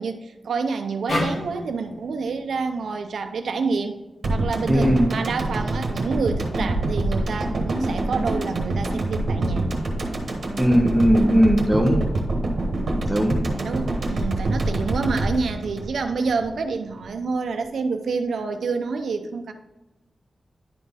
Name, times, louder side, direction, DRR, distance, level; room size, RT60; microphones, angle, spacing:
voice 1, 0.0-4.0 4.3-9.7 13.5-19.5, right 4 dB, 90° right, 7 dB, 0.7 m, -28 dB
sound 1, 1.1-4.3, left 1 dB, 65° left, 2.4 m, -32 dB
sound 2, 4.2-16.6 16.9-17.0, right 2 dB, 60° right, 1.3 m, -26 dB
voice 2, 4.7-5.0 10.6-12.0 13.1-13.4, equal, 5° right, 1 dB, 0.8 m, -18 dB
10.5 x 4.2 x 3.6 m, 1.0 s
wide cardioid pair, 175°, 0 cm